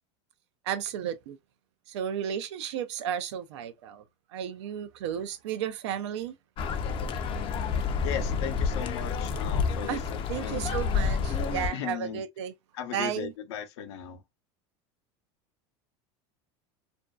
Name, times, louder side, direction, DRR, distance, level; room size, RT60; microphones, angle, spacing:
voice 1, 0.7-1.4 1.9-4.0 4.3-6.4 9.9-10.0 10.3-12.5 12.9-13.3, right 9 dB, 85° right, 0.4 m, -33 dB
sound 1, 6.6-11.7, left 5 dB, 35° left, 0.4 m, -29 dB
voice 2, 8.0-10.0 10.4-10.7 11.7-12.2 12.7-14.2, left 9 dB, 75° left, 0.6 m, -36 dB
2.5 x 2.2 x 2.2 m
supercardioid pair, 115°, 14 cm